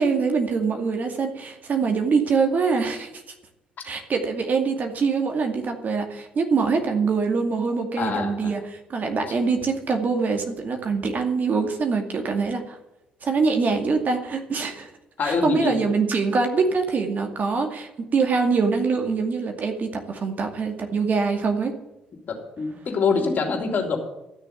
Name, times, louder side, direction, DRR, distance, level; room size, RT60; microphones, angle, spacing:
voice 1, 0.0-3.1 3.8-12.8 13.2-14.9 15.2-21.7, right 4 dB, 45° right, 4 dB, 2.3 m, -24 dB
voice 2, 8.0-8.5 15.2-15.8 22.3-24.0, left 4 dB, 50° left, 2 dB, 3.4 m, -25 dB
13.5 x 6.7 x 9.2 m, 0.93 s
hypercardioid pair, 45°, 4 cm